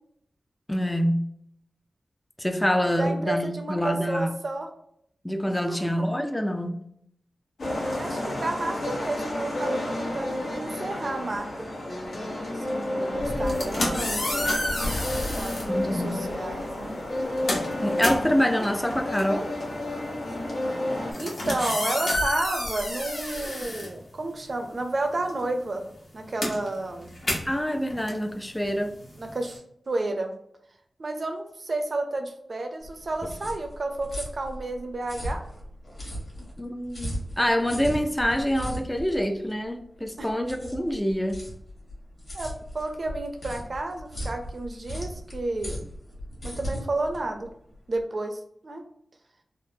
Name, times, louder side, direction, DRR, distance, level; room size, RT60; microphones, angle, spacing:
voice 1, 0.7-1.3 2.4-4.3 5.2-6.8 15.7-16.2 17.8-19.5 27.5-28.9 36.6-41.4, equal, 10° left, 6 dB, 0.4 m, -26 dB
voice 2, 3.0-4.7 5.5-6.2 8.0-11.7 12.5-14.7 15.3-17.0 21.2-25.9 26.1-27.1 29.2-30.3 31.0-35.4 40.2-40.3 42.3-45.8 46.4-47.5 47.9-48.8, right 2 dB, 50° right, 4 dB, 0.5 m, -31 dB
sound 1, 7.6-21.1, left 1 dB, 85° left, 1.0 m, -31 dB
sound 2, 13.3-15.7 16.6-16.8 17.1-24.6 24.9-29.6, left 1 dB, 60° left, 1.0 m, -31 dB
sound 3, 32.8-48.0, equal, 40° left, 1.2 m, -37 dB
3.5 x 2.0 x 2.7 m, 0.71 s
wide cardioid pair, 105°, 0 cm